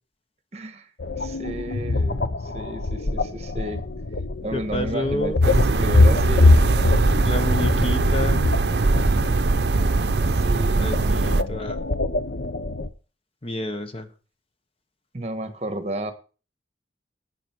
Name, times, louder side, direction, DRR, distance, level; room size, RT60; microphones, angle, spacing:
voice 1, 0.5-0.9 1.2-3.8 4.4-6.5 8.7-9.3 10.3-11.7 15.1-16.1, right 1 dB, 35° right, 9 dB, 1.4 m, -33 dB
sound 1, 1.0-12.9, left 2 dB, 65° left, 0.8 m, -23 dB
voice 2, 4.5-5.4 7.2-8.5 10.8-11.8 13.4-14.1, left 1 dB, 30° left, 8 dB, 1.1 m, -29 dB
sound 2, 5.4-11.4, right 3 dB, 60° right, 0.6 m, -21 dB
11.5 x 9.0 x 4.6 m, 0.35 s
head